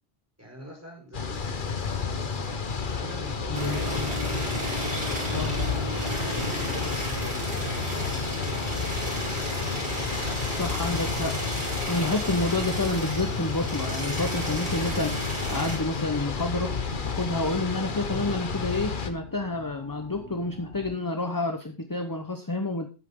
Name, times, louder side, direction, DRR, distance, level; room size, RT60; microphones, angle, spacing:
voice 1, 0.4-4.6 5.3-7.4 7.7-10.1 10.5-11.6, equal, 15° right, 0 dB, 5.3 m, -44 dB
sound 1, 1.1-19.1, left 5 dB, 50° left, 1.3 m, -31 dB
sound 2, 1.9-20.9, left 2 dB, 80° left, 3.3 m, -46 dB
voice 2, 3.5-3.8 5.3-5.5 10.5-11.3 11.9-15.2 15.5-22.9, left 2 dB, 20° left, 6 dB, 0.9 m, -29 dB
sound 3, 3.5-15.8, equal, 85° right, 5.2 m, -33 dB
14.0 x 8.3 x 3.7 m, 0.32 s
omnidirectional pair, 1.1 m